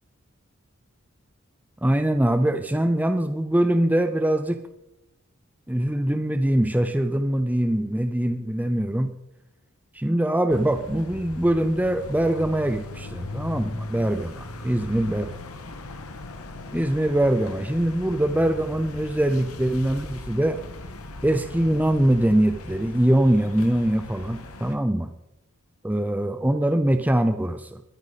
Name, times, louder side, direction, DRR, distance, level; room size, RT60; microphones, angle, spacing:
voice 1, 1.8-4.6 5.7-9.1 9.9-15.3 16.7-20.6 21.2-25.1 25.8-27.8, right 1 dB, 5° right, 8 dB, 0.6 m, -23 dB
sound 1, 10.5-24.8, left 2 dB, 85° left, 1.5 m, -38 dB
22.5 x 10.5 x 4.1 m, 0.86 s
head